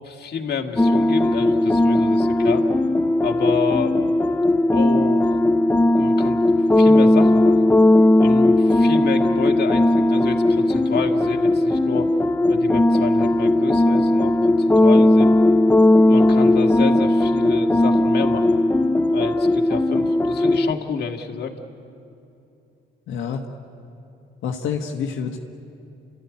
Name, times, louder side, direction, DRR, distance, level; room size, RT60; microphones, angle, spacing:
voice 1, 0.0-2.6 3.2-4.0 4.7-5.4 6.0-6.4 6.8-7.8 8.2-12.1 12.5-15.3 16.0-18.5 19.1-21.5, left 6 dB, 55° left, 3 dB, 2.0 m, -29 dB
sound 1, 0.8-20.7, left 1 dB, 10° left, 0.5 m, -17 dB
voice 2, 23.1-23.4 24.4-25.4, left 7 dB, 80° left, 1 dB, 1.5 m, -27 dB
29.5 x 14.0 x 9.8 m, 2.7 s
cardioid pair, 90°, 20 cm